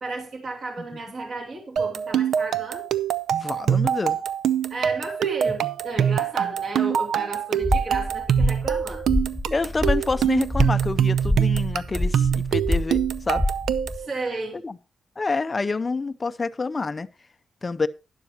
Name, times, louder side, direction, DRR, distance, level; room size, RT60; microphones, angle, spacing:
voice 1, 0.0-2.9 4.7-9.0 13.9-14.6, right 2 dB, 45° right, 2.6 m, -33 dB
sound 1, 1.8-14.1, right 9 dB, 75° right, 0.5 m, -24 dB
voice 2, 3.4-4.2 9.5-13.4 14.6-14.8 15.2-17.1 17.6-17.9, left 3 dB, 20° left, 0.5 m, -27 dB
sound 2, 7.6-14.0, left 1 dB, 10° right, 1.6 m, -27 dB
12.0 x 11.0 x 2.9 m
wide cardioid pair, 175°, 0 cm